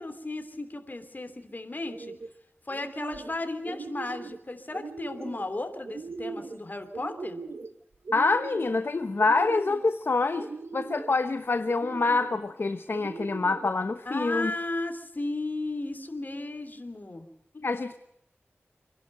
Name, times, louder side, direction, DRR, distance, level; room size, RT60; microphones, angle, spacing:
voice 1, 0.0-2.1 2.7-7.4 14.0-17.3, left 2 dB, 45° left, 7 dB, 3.0 m, -35 dB
sound 1, 1.8-2.3 2.7-3.4 3.6-4.4 4.7-5.4 5.8-6.6 6.9-7.7 8.0-8.8 9.2-9.9 10.4-11.1 11.7-12.4 12.9-13.7, right 4 dB, 70° right, 1.3 m, -40 dB
voice 2, 8.1-14.5 17.5-17.9, left 3 dB, 60° left, 9 dB, 1.0 m, -26 dB
26.5 x 11.5 x 9.1 m, 0.78 s
wide cardioid pair, 55°, 4 cm